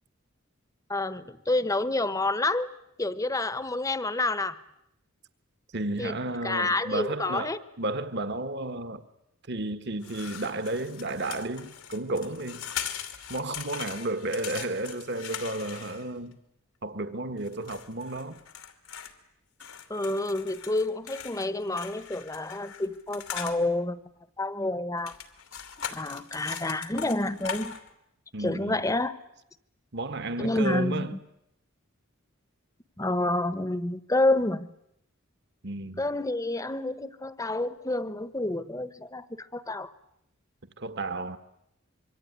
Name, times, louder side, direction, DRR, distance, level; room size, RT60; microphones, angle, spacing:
voice 1, 0.9-2.7 3.0-4.6 6.0-6.1 6.4-7.6 14.5-14.6 19.9-24.0 24.4-25.1 25.9-27.8 28.4-29.2 30.4-31.2 33.0-34.7 36.0-39.9, left 2 dB, 15° left, 1.0 m, -29 dB
voice 2, 5.7-9.0 9.5-12.7 13.3-16.4 16.8-18.4 28.3-28.8 29.9-31.2 35.6-36.1 40.8-41.4, right 2 dB, 55° right, 1.5 m, -32 dB
sound 1, 10.0-16.3 17.5-19.1 19.6-23.6 25.0-27.9, left 8 dB, 85° left, 2.8 m, -40 dB
26.0 x 23.5 x 9.6 m
head